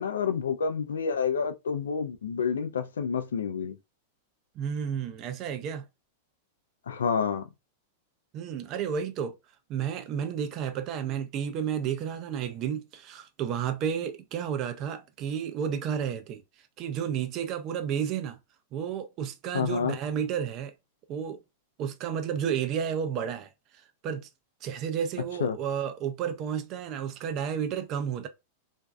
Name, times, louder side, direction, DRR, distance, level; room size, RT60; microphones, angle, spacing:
voice 1, 0.0-3.7 6.9-7.5 19.5-20.0 25.4-25.6, left 6 dB, 85° left, 0.3 m, -29 dB
voice 2, 4.6-5.8 8.3-9.4 9.7-16.4 16.8-18.4 18.7-20.7 21.1-21.4 21.8-23.5 24.0-24.3 24.6-28.3, right 8 dB, 45° right, 0.5 m, -31 dB
2.5 x 2.3 x 2.2 m
hypercardioid pair, 110°, 0 cm